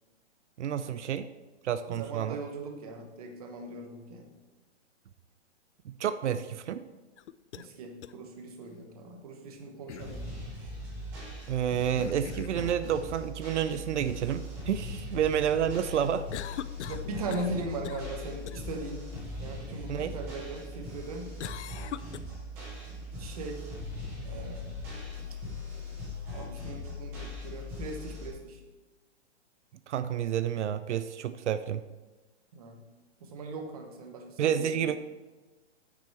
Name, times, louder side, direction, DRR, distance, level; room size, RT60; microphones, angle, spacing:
voice 1, 0.6-1.3 1.6-2.4 5.9-6.9 11.5-16.3 19.9-20.1 29.9-31.8 34.4-35.0, right 9 dB, 85° right, 12 dB, 0.6 m, -29 dB
voice 2, 1.9-4.3 7.5-10.2 16.9-19.0 19.4-21.3 23.2-23.7 24.2-24.7 26.3-28.6 32.5-32.8 33.2-34.7, right 2 dB, 35° right, 3 dB, 1.1 m, -39 dB
sound 1, 7.2-7.7 8.0-8.1 9.9-10.2 11.9-12.8 16.3-17.6 17.8-18.1 18.5-18.6 21.4-22.2, left 11 dB, 80° left, 0.5 m, -41 dB
sound 2, 10.0-28.3, left 2 dB, 5° right, 0.6 m, -40 dB
9.3 x 6.1 x 4.4 m, 1.2 s
hypercardioid pair, 175°, 34 cm